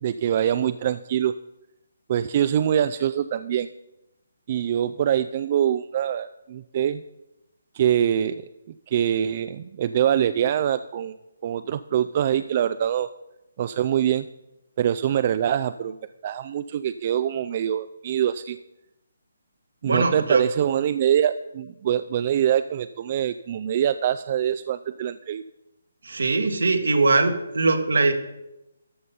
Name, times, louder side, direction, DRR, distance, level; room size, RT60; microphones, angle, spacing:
voice 1, 0.0-1.3 2.1-3.7 4.5-7.0 7.7-8.5 8.9-11.1 11.4-13.1 13.6-14.3 14.8-16.0 16.2-18.6 19.8-25.4, right 10 dB, 40° right, 12 dB, 0.3 m, -24 dB
voice 2, 19.8-20.4 26.1-28.1, right 3 dB, 70° right, 8 dB, 1.3 m, -21 dB
13.5 x 5.4 x 5.5 m, 0.93 s
figure-of-eight pair, 150°, 0 cm